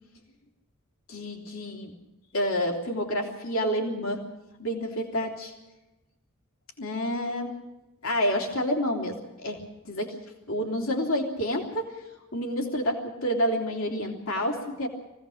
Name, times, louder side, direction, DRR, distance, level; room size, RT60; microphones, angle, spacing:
voice 1, 1.1-1.9 2.3-4.2 4.6-5.5 6.8-7.5 8.0-10.2 10.5-12.0 12.3-14.9, equal, 65° left, 1 dB, 3.3 m, -29 dB
24.0 x 17.0 x 6.5 m, 1.0 s
head